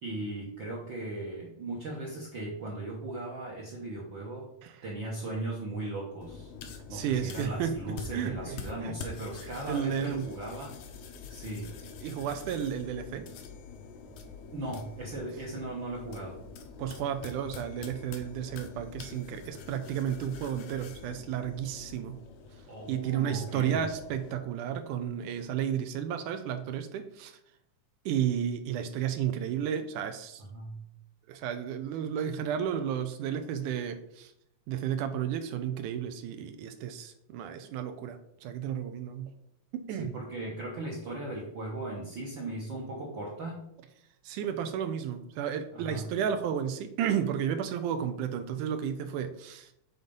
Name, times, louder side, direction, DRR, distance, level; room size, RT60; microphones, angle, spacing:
voice 1, 0.0-4.5 4.8-6.5 6.9-10.8 11.3-11.7 14.5-16.4 22.7-23.8 30.5-30.8 40.0-43.7 45.7-46.1, right 2 dB, 55° right, -4 dB, 1.3 m, -37 dB
sound 1, 6.2-24.4, left 5 dB, 75° left, 1.5 m, -46 dB
voice 2, 6.9-9.0 9.4-10.3 12.0-13.3 16.8-22.2 22.9-27.4 28.1-30.4 31.3-34.3 34.7-39.3 39.7-40.2 44.2-49.7, right 9 dB, 80° right, 7 dB, 2.1 m, -33 dB
7.3 x 3.9 x 5.3 m, 0.77 s
omnidirectional pair, 3.7 m